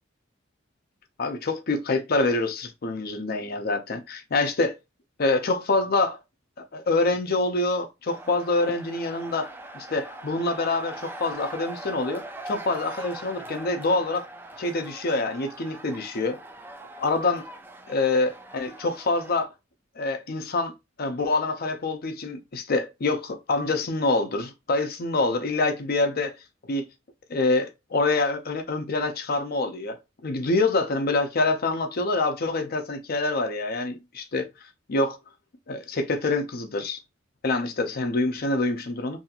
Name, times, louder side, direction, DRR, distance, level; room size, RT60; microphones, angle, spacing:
voice 1, 1.2-4.8 5.2-6.2 6.6-14.2 14.6-16.4 17.0-17.4 17.9-19.5 20.0-20.7 21.0-26.4 26.7-26.9 27.3-30.0 30.2-34.5 34.9-35.2 35.7-37.0 37.4-39.2, left 3 dB, 50° left, 0.6 m, -26 dB
sound 1, 8.1-19.4, right 2 dB, 10° right, 0.3 m, -41 dB
2.7 x 2.4 x 2.8 m
head